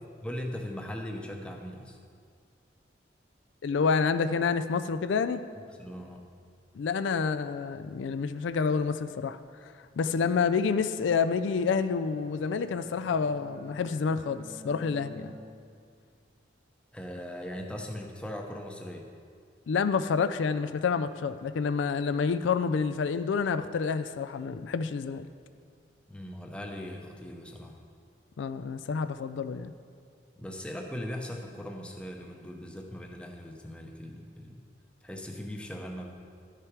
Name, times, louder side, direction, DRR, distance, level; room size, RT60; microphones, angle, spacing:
voice 1, 0.2-2.0 5.7-6.3 16.9-19.1 26.1-27.8 30.4-34.6 35.0-36.1, left 1 dB, 5° left, 2 dB, 0.7 m, -39 dB
voice 2, 3.6-5.4 6.8-9.4 10.0-15.3 19.7-25.3 28.4-29.7, left 5 dB, 80° left, 11 dB, 0.4 m, -28 dB
Bowed string instrument, 10.5-15.9, equal, 55° right, 1.4 m, -50 dB
11.5 x 6.6 x 4.6 m, 2.2 s
head